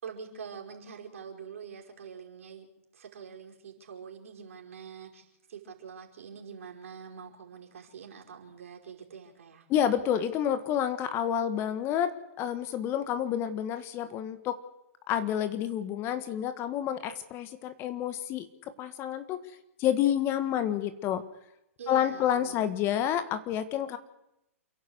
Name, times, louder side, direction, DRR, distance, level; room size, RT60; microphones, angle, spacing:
voice 1, 0.0-2.7 2.9-9.7 13.2-13.3 21.8-22.5 22.8-23.0, right 6 dB, 65° right, 0 dB, 5.0 m, -45 dB
voice 2, 9.7-14.6 15.1-18.5 18.8-19.4 19.8-21.2 21.9-24.0, left 10 dB, 30° left, 11 dB, 1.7 m, -29 dB
28.5 x 11.5 x 8.0 m, 0.85 s
hypercardioid pair, 120°, 8 cm